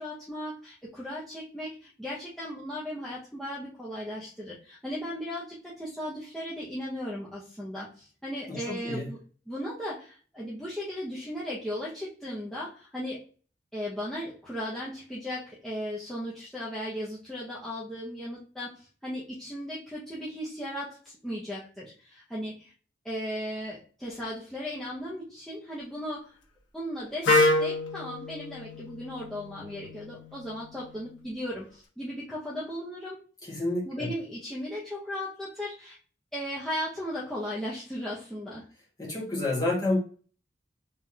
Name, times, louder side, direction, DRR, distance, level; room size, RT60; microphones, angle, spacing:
voice 1, 0.0-9.2 9.5-13.2 13.7-22.7 23.0-26.4 26.7-33.2 33.8-36.0 36.3-38.7, equal, 5° left, -9 dB, 0.8 m, -36 dB
voice 2, 8.5-9.1 33.4-34.1 39.0-40.0, left 2 dB, 20° left, -4 dB, 1.5 m, -29 dB
Wind instrument woodwind instrument, 27.2-31.1, left 2 dB, 90° left, 1.1 m, -28 dB
3.8 x 3.3 x 2.8 m, 0.39 s
head